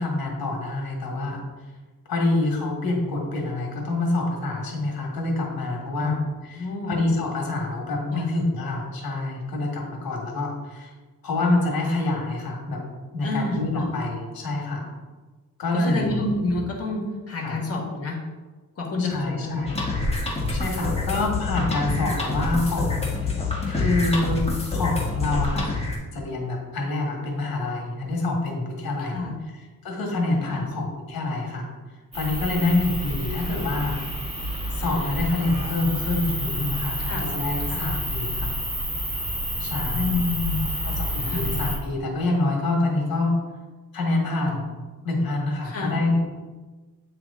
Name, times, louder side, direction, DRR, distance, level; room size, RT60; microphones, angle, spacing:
voice 1, 0.0-1.4 2.1-6.1 6.4-10.9 11.2-12.8 13.1-14.9 15.6-16.2 17.4-17.6 19.0-19.8 20.5-25.7 26.1-29.2 29.5-31.7 32.1-34.0 34.7-38.5 39.6-40.1 40.8-43.4 43.9-44.7 45.0-46.3, left 2 dB, 80° left, 0 dB, 1.6 m, -26 dB
voice 2, 6.0-7.0 8.1-8.3 13.2-13.9 15.7-18.2 18.8-19.6 21.8-21.9 29.0-29.3 30.5-30.7 37.0-37.2 37.7-37.8 39.9-40.8 41.2-41.5 45.6-46.1, left 2 dB, 40° left, -2 dB, 1.6 m, -29 dB
sound 1, 19.7-26.0, left 3 dB, 15° left, 1.4 m, -27 dB
sound 2, 32.1-41.8, equal, 15° right, 1.7 m, -29 dB
8.8 x 3.4 x 3.6 m, 1.3 s
cardioid pair, 125°, 35 cm